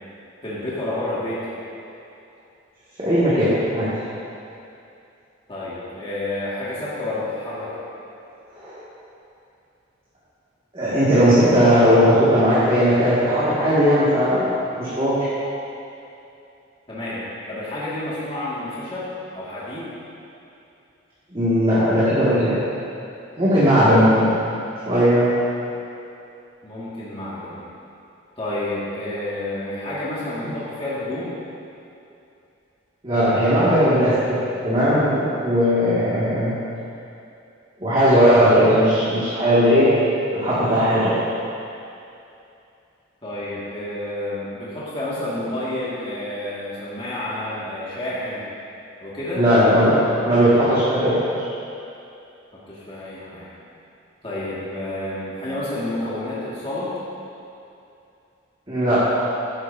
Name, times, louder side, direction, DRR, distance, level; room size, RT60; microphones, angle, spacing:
voice 1, 0.4-1.4 5.5-7.8 16.9-19.1 19.3-19.9 26.6-27.6 28.4-31.4 43.2-48.5 49.0-49.4 52.7-53.5 54.2-56.9, left 1 dB, 25° left, -9 dB, 2.1 m, -29 dB
voice 2, 3.0-3.9 8.6-8.8 10.7-14.5 14.8-15.3 21.3-22.6 23.4-24.3 24.9-25.3 33.0-34.4 34.6-36.5 37.8-39.9 40.3-41.2 49.3-50.0 50.2-51.3 58.7-59.0, equal, 30° right, -12 dB, 2.2 m, -17 dB
14.5 x 10.0 x 2.8 m, 2.7 s
head